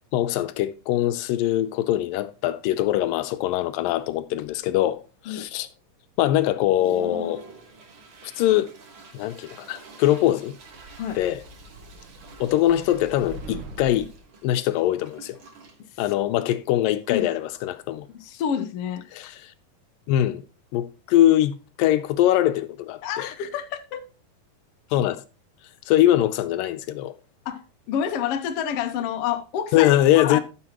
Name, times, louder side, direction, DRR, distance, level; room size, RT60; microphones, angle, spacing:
voice 1, 0.1-5.7 6.2-7.4 8.2-8.7 9.1-10.6 11.2-11.4 12.4-14.1 14.4-15.4 16.0-18.1 19.1-19.5 20.1-20.4 20.7-23.3 24.9-25.2 25.9-27.1 29.7-30.4, left 13 dB, 85° left, 2.3 m, -22 dB
Toilet flush, 2.0-2.2 2.5-3.1 3.6-3.7 4.0-4.7 5.2-5.3 5.8-5.9 6.4-18.3, right 3 dB, 50° right, 1.7 m, -46 dB
sound 1, 10.6-14.2, right 2 dB, 70° right, 2.6 m, -42 dB
voice 2, 18.1-19.0 23.0-24.0 27.4-30.4, left 8 dB, 70° left, 1.5 m, -28 dB
13.5 x 6.3 x 3.0 m
omnidirectional pair, 3.9 m